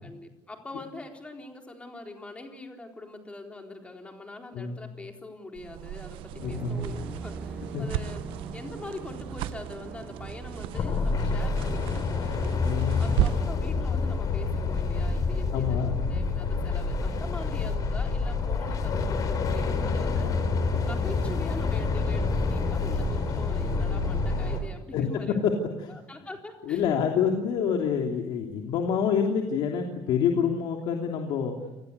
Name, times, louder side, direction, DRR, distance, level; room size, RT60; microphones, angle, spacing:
voice 1, 0.0-12.5 13.0-20.3 20.8-25.4 25.9-26.8, left 2 dB, 15° left, 2 dB, 4.0 m, -43 dB
sound 1, 5.5-13.6, right 14 dB, 75° right, 0.8 m, -35 dB
voice 2, 6.3-6.8 7.7-7.8 12.6-13.0 15.5-16.0 23.1-23.3 24.9-25.1 25.4-25.5 25.8-25.9 26.7-31.5, left 7 dB, 65° left, 2 dB, 3.1 m, -27 dB
sound 2, 6.4-24.6, right 4 dB, 15° right, 5.6 m, -41 dB
sound 3, 10.7-24.6, left 4 dB, 40° left, 4.3 m, -28 dB
29.0 x 21.0 x 8.2 m, 1.0 s
cardioid pair, 145°, 9 cm